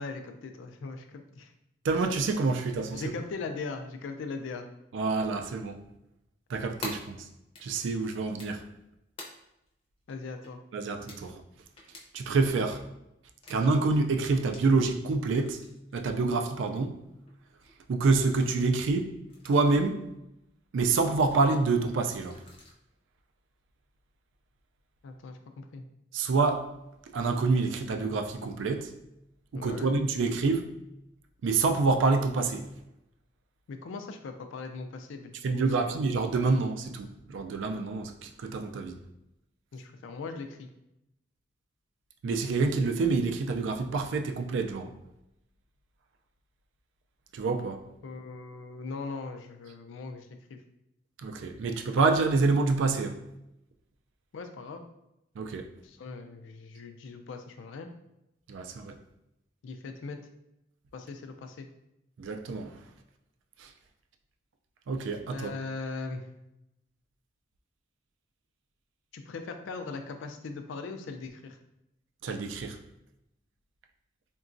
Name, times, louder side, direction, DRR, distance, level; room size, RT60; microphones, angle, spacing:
voice 1, 0.0-1.5 2.9-4.7 10.1-10.6 25.0-25.8 29.5-29.9 33.7-36.0 39.7-40.7 48.0-50.6 54.3-54.8 55.8-57.9 59.6-60.2 60.9-61.7 65.3-66.2 69.1-71.6, left 4 dB, 90° left, 0.4 m, -39 dB
voice 2, 1.8-3.0 4.9-5.8 6.5-7.3 7.6-8.6 10.7-11.4 12.1-12.8 13.5-15.6 15.9-16.9 17.9-19.2 19.4-20.1 20.7-22.4 26.1-26.7 27.1-28.9 29.5-30.7 31.4-32.6 35.4-39.0 42.2-44.9 47.3-47.9 51.2-53.2 55.4-55.7 58.5-58.9 62.2-62.7 63.6-63.7 64.9-65.5 72.2-72.8, right 3 dB, 80° right, 0.3 m, -27 dB
sound 1, 6.8-7.0 7.6-7.9 8.4-8.8 9.2-9.3 9.7-9.8 10.1-10.2 10.4-10.8 11.1-11.2 11.8-12.0 12.5-12.8 13.4-13.9 14.3-14.7 15.2-16.0 16.4-17.0 17.3-17.4 17.6-17.8 18.2-18.9 19.3-19.9 21.0-21.6 22.1-22.7, left 2 dB, 30° left, 0.5 m, -46 dB
3.8 x 2.2 x 2.5 m
head